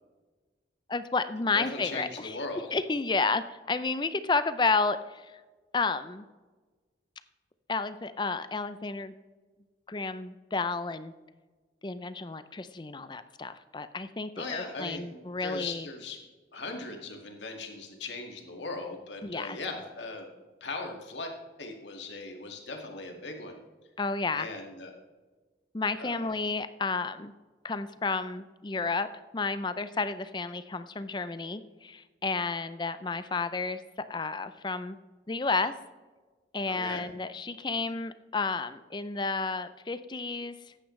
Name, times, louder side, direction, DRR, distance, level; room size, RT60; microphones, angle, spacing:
voice 1, 0.9-2.4 2.7-5.3 5.7-6.2 7.7-9.1 9.9-11.1 11.8-15.9 19.2-19.6 24.0-24.5 25.7-27.3 27.6-33.8 34.1-35.0 35.3-35.7 36.5-40.6, left 4 dB, 25° left, 12 dB, 0.4 m, -31 dB
voice 2, 1.5-2.8 14.4-16.2 16.5-20.3 20.6-21.3 21.6-23.6 24.4-24.9 26.0-26.3 36.7-37.0, left 3 dB, 85° left, 2 dB, 2.0 m, -39 dB
14.0 x 9.8 x 3.2 m, 1.3 s
head